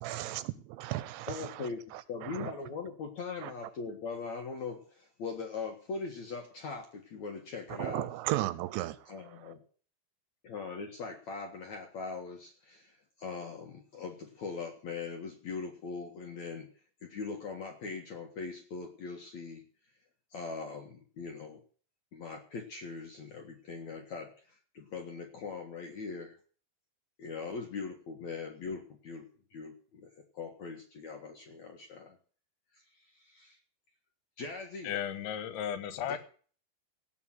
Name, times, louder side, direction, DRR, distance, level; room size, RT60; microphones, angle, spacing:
voice 1, 0.0-2.5 3.4-3.5 7.8-9.0, right 15 dB, 80° right, 2.9 m, -35 dB
voice 2, 1.3-1.8 2.1-8.1 9.1-9.6 10.4-16.7 17.0-19.6 20.3-21.6 22.1-24.3 24.7-26.4 27.2-30.1 30.3-32.2 33.1-33.6 34.4-34.9 36.0-36.2, left 4 dB, 55° left, 2.1 m, -41 dB
voice 3, 34.8-36.2, left 9 dB, 80° left, 3.5 m, -35 dB
17.5 x 5.9 x 9.1 m
omnidirectional pair, 5.4 m